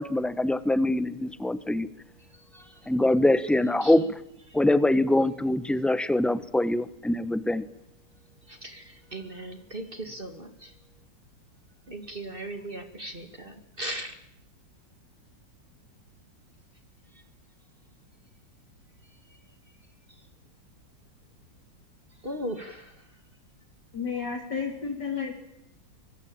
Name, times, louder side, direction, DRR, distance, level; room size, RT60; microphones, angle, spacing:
voice 1, 0.0-1.9 2.9-4.0 4.5-7.6, left 1 dB, ahead, 13 dB, 0.8 m, -24 dB
voice 2, 8.5-10.7 11.9-14.2 22.2-23.0, right 1 dB, 30° right, 7 dB, 2.4 m, -38 dB
voice 3, 23.9-25.3, left 6 dB, 60° left, 3 dB, 4.1 m, -31 dB
24.5 x 24.0 x 8.9 m, 0.81 s
omnidirectional pair, 2.0 m